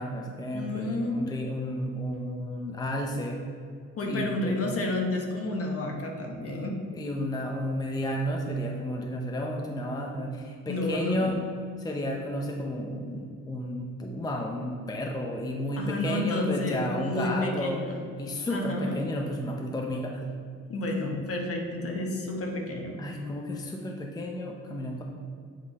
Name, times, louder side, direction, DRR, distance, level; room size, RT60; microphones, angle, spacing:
voice 1, 0.0-3.4 4.1-4.6 6.9-11.4 11.8-17.9 18.2-20.2 23.0-25.0, equal, 15° left, 1 dB, 0.6 m, -32 dB
voice 2, 0.5-1.2 4.0-6.8 10.7-11.3 15.8-18.0 18.5-19.0 20.7-23.0, left 2 dB, 50° left, 1 dB, 1.1 m, -30 dB
7.5 x 3.1 x 4.1 m, 2.3 s
cardioid pair, 90°, 30 cm